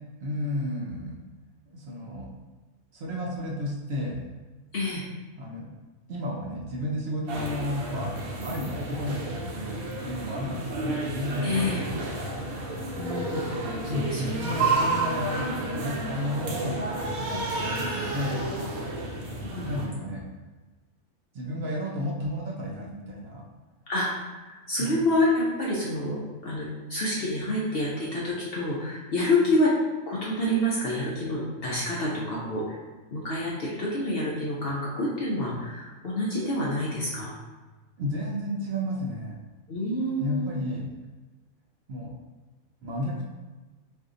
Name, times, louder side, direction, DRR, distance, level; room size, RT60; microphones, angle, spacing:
voice 1, 0.2-1.2 1.7-2.3 2.9-4.2 5.4-5.7 6.1-12.4 13.9-16.9 17.2-18.4 19.6-20.2 21.3-23.4 24.8-25.0 38.0-39.4 40.2-40.9 41.9-42.1 42.8-43.2, left 1 dB, 65° right, -3 dB, 0.7 m, -32 dB
voice 2, 4.7-5.0 11.4-11.8 12.9-13.4 13.9-14.6 19.4-19.7 23.9-24.1 24.5-29.7 30.1-32.8 33.1-37.3 39.7-40.6, left 1 dB, 60° left, -5 dB, 0.6 m, -28 dB
sound 1, 7.3-19.9, right 2 dB, 80° right, 1.1 m, -31 dB
2.6 x 2.5 x 3.6 m, 1.2 s
omnidirectional pair, 1.5 m